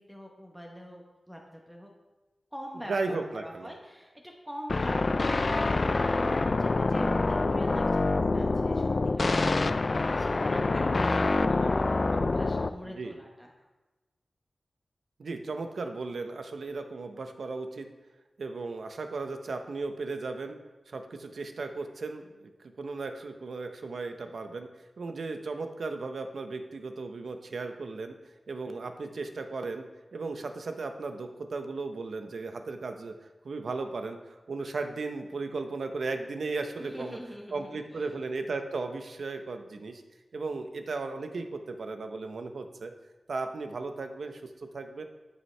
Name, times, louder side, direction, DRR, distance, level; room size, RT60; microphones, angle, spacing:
voice 1, 0.0-1.9 2.5-13.5 36.8-38.2, equal, ahead, 0 dB, 0.9 m, -44 dB
voice 2, 2.9-3.7 12.8-13.2 15.2-17.9 18.4-20.6 20.9-22.5 22.8-24.7 25.0-28.1 28.5-29.9 30.1-33.1 33.4-37.2 37.5-40.0 40.3-42.9 43.3-44.4 44.7-45.0, right 3 dB, 75° right, 6 dB, 0.7 m, -36 dB
sound 1, 4.7-12.7, left 3 dB, 45° left, 0.3 m, -26 dB
11.0 x 5.6 x 3.2 m, 1.2 s
wide cardioid pair, 100°, 0 cm